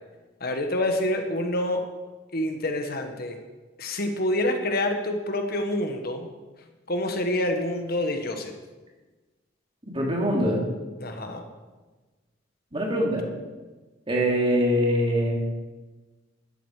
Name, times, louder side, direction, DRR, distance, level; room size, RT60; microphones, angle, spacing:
voice 1, 0.4-1.8 2.3-3.4 3.8-6.3 6.9-8.5 11.0-11.4, left 1 dB, 55° left, 5 dB, 1.3 m, -27 dB
voice 2, 9.9-10.6 12.7-13.2 14.1-15.4, equal, 30° right, -2 dB, 3.2 m, -23 dB
12.5 x 12.0 x 4.9 m, 1.2 s
head